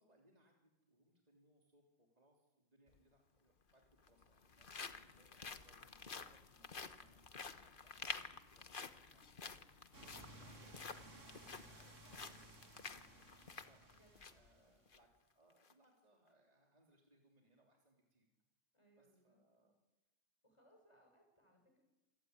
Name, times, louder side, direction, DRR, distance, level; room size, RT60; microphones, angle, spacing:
voice 1, 0.0-9.7 10.0-13.9 14.3-18.3 19.0-19.8, right 1 dB, 30° right, 0 dB, 3.6 m, -73 dB
sound 1, 2.9-3.0 3.9-14.5 14.9-15.0 15.5-15.7, left 5 dB, 45° left, 1.3 m, -51 dB
sound 2, 9.9-14.7, right 2 dB, 85° right, 3.2 m, -59 dB
voice 2, 10.4-10.9 13.9-14.8 18.7-19.7 20.4-21.8, equal, 25° left, 2 dB, 6.7 m, -72 dB
27.5 x 17.0 x 9.8 m, 1.0 s
omnidirectional pair, 1.3 m